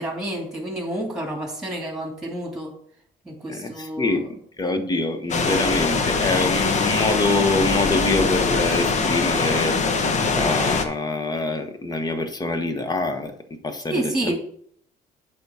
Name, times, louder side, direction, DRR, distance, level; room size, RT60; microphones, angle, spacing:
voice 1, 0.0-2.7 3.2-4.2 13.9-14.4, right 1 dB, 5° right, 2 dB, 2.3 m, -29 dB
voice 2, 3.5-4.3 4.6-14.4, left 2 dB, 25° left, 7 dB, 1.1 m, -25 dB
sound 1, 5.3-10.8, left 4 dB, 45° left, 1.1 m, -22 dB
8.5 x 3.7 x 6.9 m, 0.65 s
cardioid pair, 110°, 17 cm